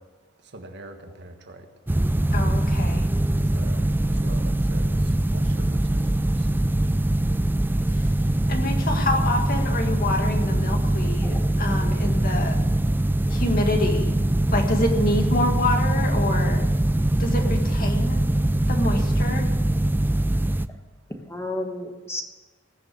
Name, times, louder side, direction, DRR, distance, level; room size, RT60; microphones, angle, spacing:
voice 1, 0.5-1.6 3.5-6.0 6.4-6.5, right 1 dB, 55° right, 5 dB, 1.5 m, -42 dB
sound 1, 1.9-20.7, right 1 dB, 10° right, 0.3 m, -22 dB
voice 2, 2.3-3.0 8.5-12.5 13.3-14.2 14.5-16.6 17.2-18.2 18.7-19.4, left 2 dB, 45° left, 3 dB, 2.0 m, -27 dB
voice 3, 3.1-3.6 8.4-8.5 10.7-11.5 17.4-17.7 20.3-20.4 21.3-22.2, left 1 dB, 15° left, 5 dB, 1.3 m, -35 dB
20.0 x 6.8 x 6.9 m, 1.3 s
head